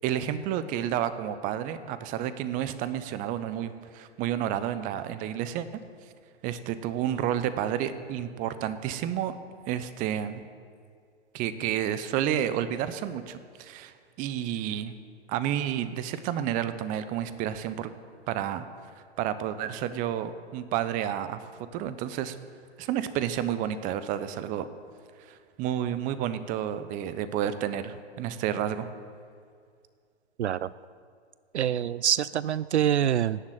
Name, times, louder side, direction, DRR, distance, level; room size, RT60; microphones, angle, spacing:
voice 1, 0.0-5.7 6.4-9.3 9.7-10.4 11.3-14.9 15.3-17.9 18.3-18.7 19.2-21.4 21.7-22.4 22.8-24.6 25.2-28.9, right 10 dB, 25° right, 13 dB, 0.8 m, -30 dB
voice 2, 30.4-30.7 31.5-33.4, right 10 dB, 75° right, 18 dB, 0.5 m, -25 dB
18.0 x 7.3 x 9.0 m, 2.2 s
figure-of-eight pair, 120°, 34 cm